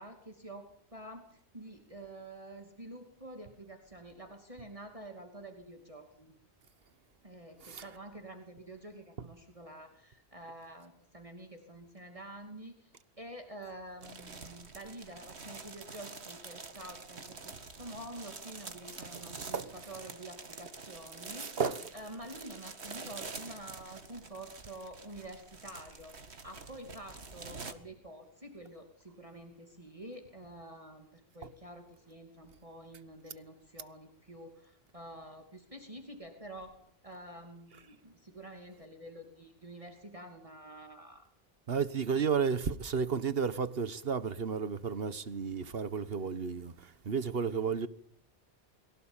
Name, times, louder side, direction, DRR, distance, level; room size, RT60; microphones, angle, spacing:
voice 1, 0.0-6.3 7.2-21.6 21.9-26.1 26.4-36.8 37.0-41.3, right 1 dB, 30° right, 2.8 m, -48 dB
sound 1, 14.0-27.7, right 4 dB, 80° right, 2.2 m, -47 dB
voice 2, 21.4-21.8 41.7-47.9, right 6 dB, 65° right, 1.5 m, -32 dB
23.5 x 16.5 x 9.0 m
omnidirectional pair, 1.1 m